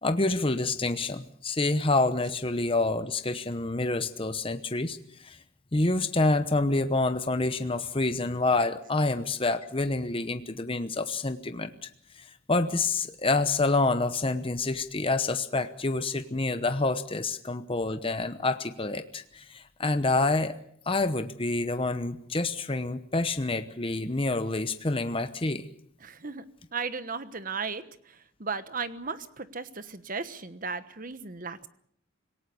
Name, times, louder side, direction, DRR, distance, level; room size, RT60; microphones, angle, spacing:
voice 1, 0.0-5.4 5.7-11.9 12.2-20.5 20.9-25.7, left 2 dB, 25° left, 9 dB, 0.9 m, -27 dB
voice 2, 26.0-26.4 26.7-31.7, right 4 dB, 40° right, 12 dB, 1.2 m, -36 dB
26.5 x 17.5 x 7.0 m, 0.66 s
head